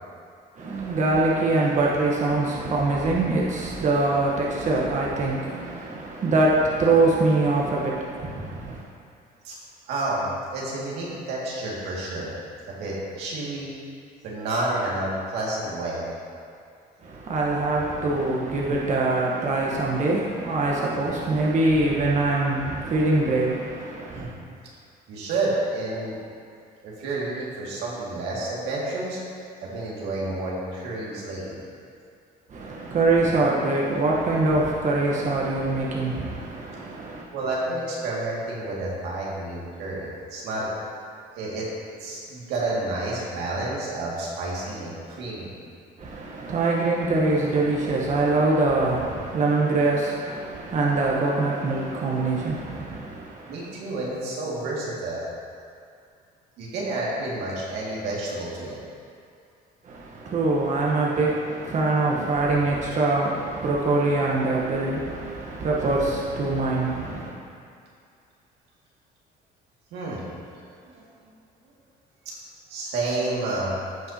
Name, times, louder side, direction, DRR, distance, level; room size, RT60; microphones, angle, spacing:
voice 1, 0.6-8.8 17.0-24.3 32.5-37.3 46.0-53.7 59.8-67.3, right 2 dB, 45° right, -3 dB, 1.1 m, -24 dB
voice 2, 9.9-10.2 10.5-12.3 12.7-13.7 14.2-16.1 24.1-24.3 25.1-26.2 26.8-29.2 29.6-31.6 37.3-40.7 41.4-41.6 42.0-45.5 53.5-55.3 56.6-58.8 69.9-70.2 70.9-71.0 72.7-73.8, right 2 dB, 85° right, -5 dB, 2.1 m, -30 dB
15.0 x 5.2 x 2.8 m, 2.3 s
cardioid pair, 110°, 17 cm